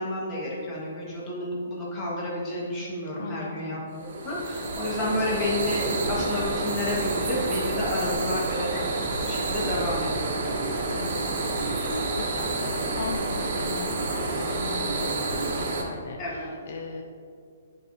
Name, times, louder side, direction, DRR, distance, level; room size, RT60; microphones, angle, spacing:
voice 1, 0.0-3.8 4.1-10.5 16.2-16.5, left 1 dB, 20° left, -5 dB, 1.4 m, -30 dB
voice 2, 3.2-3.8 8.0-8.2 10.9-17.0, left 5 dB, 55° left, 2 dB, 0.4 m, -39 dB
sound 1, 4.0-15.8, right 2 dB, 50° right, 1.1 m, -29 dB
10.5 x 4.7 x 2.7 m, 2.3 s
hypercardioid pair, 175°, 0 cm